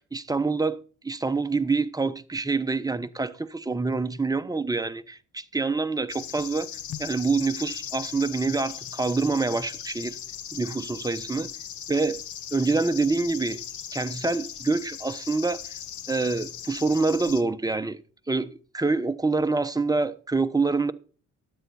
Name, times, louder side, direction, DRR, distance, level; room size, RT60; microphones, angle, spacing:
voice 1, 0.0-6.7 7.0-10.2 10.5-11.5 11.9-12.2 12.5-13.6 13.9-15.7 16.1-18.0 18.3-20.9, right 3 dB, 10° right, 0.9 m, -26 dB
sound 1, 6.1-17.4, left 10 dB, 75° left, 1.0 m, -38 dB
13.0 x 9.5 x 4.2 m
cardioid pair, 90°, 30 cm